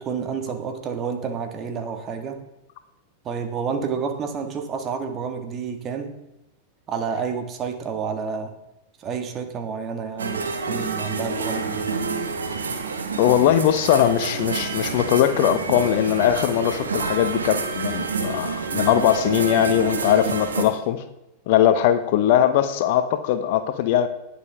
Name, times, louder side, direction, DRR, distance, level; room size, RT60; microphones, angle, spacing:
voice 1, 0.0-2.4 3.2-6.2 6.9-8.5 9.0-11.9, right 6 dB, 30° right, 7 dB, 1.9 m, -29 dB
sound 1, 10.2-20.6, right 4 dB, 75° right, 1.6 m, -28 dB
voice 2, 13.2-21.0 21.5-24.1, left 11 dB, 55° left, 10 dB, 1.0 m, -20 dB
19.5 x 7.1 x 3.6 m, 0.93 s
figure-of-eight pair, 90°, 0 cm